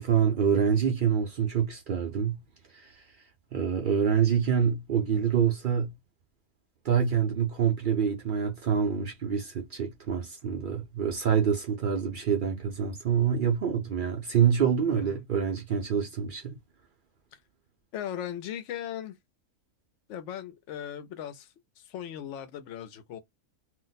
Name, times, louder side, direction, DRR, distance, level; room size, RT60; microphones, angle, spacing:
voice 1, 0.0-2.4 2.7-3.0 3.5-5.9 6.8-16.6, right 7 dB, 65° right, 0.5 m, -26 dB
voice 2, 14.9-15.2 17.9-19.1 20.1-23.2, left 10 dB, 65° left, 0.8 m, -38 dB
2.5 x 2.1 x 3.9 m
omnidirectional pair, 1.5 m